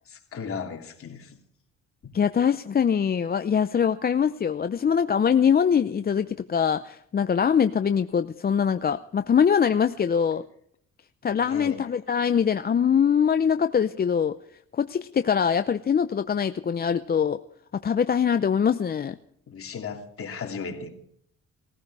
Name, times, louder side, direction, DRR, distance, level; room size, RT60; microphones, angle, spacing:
voice 1, 0.1-1.4 2.0-2.1 11.3-11.8 19.5-21.0, left 5 dB, 50° left, 2.9 m, -36 dB
voice 2, 2.1-10.4 11.2-14.3 14.8-17.4 17.8-19.2, left 7 dB, 30° left, 0.6 m, -23 dB
19.5 x 15.0 x 4.8 m
cardioid pair, 105°, 29 cm